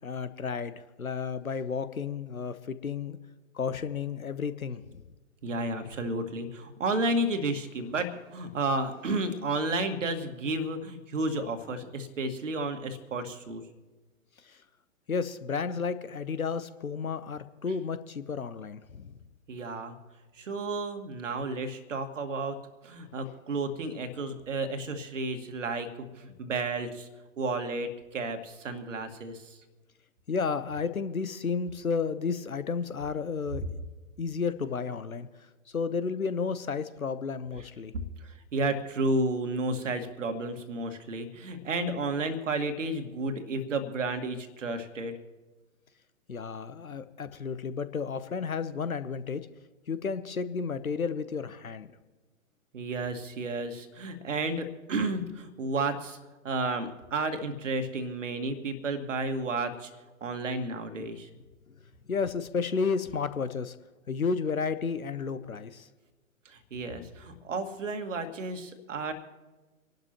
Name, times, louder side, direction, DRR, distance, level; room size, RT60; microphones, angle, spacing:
voice 1, 0.0-3.2 3.5-5.0 14.4-14.6 15.1-19.2 30.3-33.7 34.2-35.3 35.7-37.9 46.3-49.5 49.9-51.9 62.1-63.8 64.1-65.9, left 5 dB, 80° left, 13 dB, 1.0 m, -32 dB
voice 2, 5.4-13.6 19.5-20.0 20.4-22.6 22.8-27.1 27.4-29.6 38.2-45.2 52.7-56.2 56.4-59.9 60.2-61.3 66.5-69.1, right 2 dB, 60° right, 7 dB, 1.9 m, -32 dB
26.5 x 12.0 x 3.0 m, 1.2 s
figure-of-eight pair, 120°, 42 cm